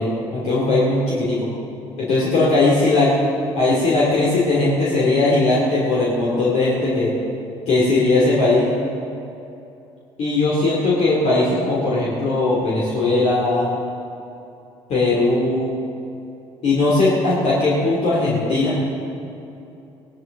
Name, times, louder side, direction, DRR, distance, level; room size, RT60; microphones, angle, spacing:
voice 1, 0.0-1.5 2.0-3.1 3.6-7.1 7.7-8.7 10.2-13.7 14.9-15.7 16.6-18.8, left 2 dB, 55° left, -6 dB, 2.8 m, -19 dB
17.5 x 12.0 x 3.9 m, 2.8 s
figure-of-eight pair, 50°, 13 cm